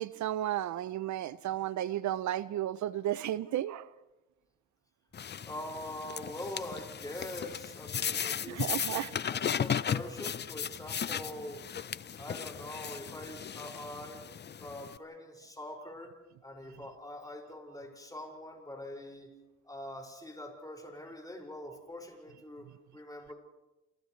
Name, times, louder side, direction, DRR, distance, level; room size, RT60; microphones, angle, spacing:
voice 1, 0.0-3.9 8.5-9.1, right 12 dB, 70° right, 16 dB, 0.6 m, -33 dB
sound 1, 5.1-15.0, left 8 dB, 35° left, 0.6 m, -36 dB
voice 2, 5.4-11.6 12.2-14.3 14.6-16.1 16.4-19.3 19.6-23.3, left 1 dB, 10° left, 1 dB, 5.7 m, -44 dB
29.0 x 28.0 x 3.2 m, 1.0 s
cardioid pair, 90°, 30 cm